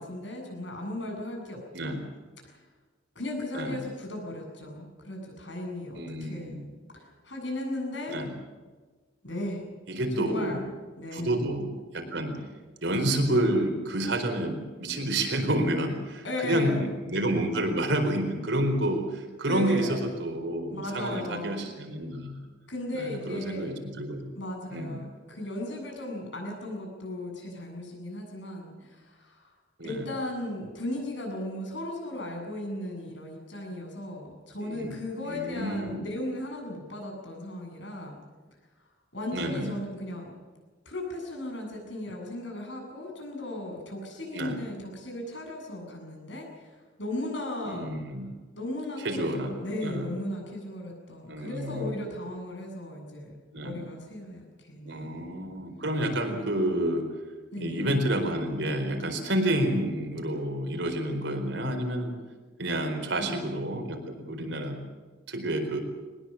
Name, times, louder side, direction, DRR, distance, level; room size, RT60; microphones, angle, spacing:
voice 1, 0.0-2.0 2.4-2.6 3.1-6.6 6.9-8.2 9.2-9.6 10.2-10.6 11.0-11.3 16.2-16.8 19.5-20.0 20.7-21.7 22.7-23.7 24.4-29.5 29.8-38.2 39.1-40.3 40.8-47.9 48.5-53.3 53.6-55.3 57.5-57.8 63.2-63.5, left 1 dB, 70° left, 1 dB, 8.0 m, -36 dB
voice 2, 5.9-6.6 8.1-8.3 9.9-10.7 11.1-12.4 12.8-22.4 22.9-24.3 24.7-25.0 29.8-30.1 34.6-35.0 35.3-36.0 39.3-39.8 44.3-44.6 47.7-48.3 49.0-49.5 49.8-50.1 51.3-52.0 53.5-53.8 54.8-57.1 57.6-62.2 62.6-64.8 65.3-65.8, right 1 dB, 70° right, 4 dB, 4.5 m, -29 dB
22.0 x 20.5 x 7.2 m, 1.4 s
head